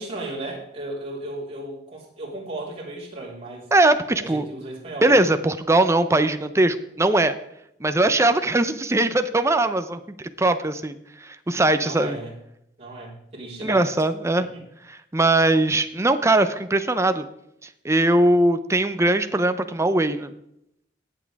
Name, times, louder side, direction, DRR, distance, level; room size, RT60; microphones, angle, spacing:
voice 1, 0.0-3.7 4.2-5.2 11.8-12.3 12.8-13.9 14.3-14.6, right 2 dB, 35° right, -6 dB, 4.2 m, -35 dB
voice 2, 3.7-4.4 5.0-7.3 7.8-12.2 13.6-14.5 14.9-17.3 17.8-20.3, right 2 dB, 15° right, 10 dB, 0.6 m, -20 dB
18.0 x 7.3 x 3.5 m, 0.78 s
head